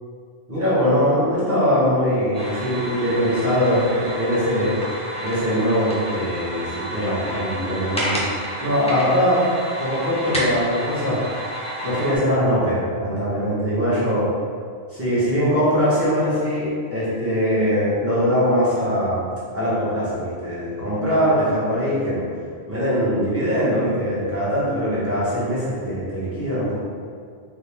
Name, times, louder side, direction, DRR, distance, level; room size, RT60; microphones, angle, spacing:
voice 1, 0.5-4.8 5.2-8.3 8.6-9.4 9.8-11.2 11.8-14.3 14.9-19.2 19.5-22.3 22.7-26.8, equal, 15° right, -11 dB, 1.2 m, -21 dB
sound 1, 2.3-12.2, equal, 10° left, 0.3 m, -30 dB
3.6 x 2.5 x 3.5 m, 2.1 s
omnidirectional pair, 1.1 m